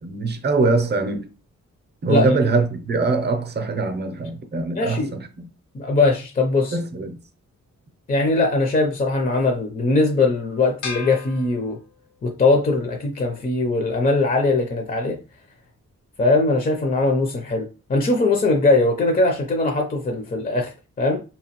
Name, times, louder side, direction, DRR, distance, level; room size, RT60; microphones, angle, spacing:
voice 1, 0.0-1.3 2.0-5.5 6.7-7.2, right 3 dB, 35° right, 0.6 m, -22 dB
voice 2, 4.7-5.2 5.7-6.8 8.1-11.8 12.2-15.2 16.2-21.2, left 3 dB, 30° left, 0.5 m, -20 dB
sound 1, 10.8-12.3, left 5 dB, 80° left, 0.7 m, -36 dB
4.7 x 2.8 x 2.9 m
wide cardioid pair, 180°, 29 cm